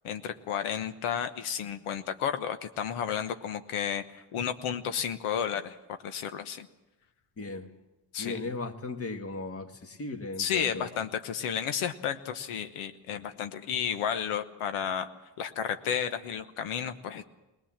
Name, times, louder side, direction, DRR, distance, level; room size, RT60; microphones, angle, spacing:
voice 1, 0.0-5.8 6.0-6.7 8.1-8.4 10.4-15.1 15.4-17.2, left 8 dB, 90° left, 9 dB, 1.2 m, -32 dB
voice 2, 7.4-7.7 8.2-10.9 13.1-13.2, left 3 dB, 30° left, 7 dB, 1.5 m, -37 dB
20.5 x 19.5 x 7.4 m, 1.0 s
cardioid pair, 135°, 49 cm